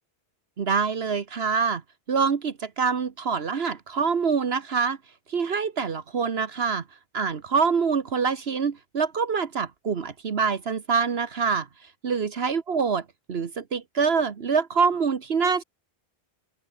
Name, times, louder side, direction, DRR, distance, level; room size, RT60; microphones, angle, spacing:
voice 1, 0.6-1.8 2.1-5.0 5.3-6.8 7.1-11.7 12.0-15.6, right 5 dB, 70° right, 1.4 m, -25 dB
open air
omnidirectional pair, 1.1 m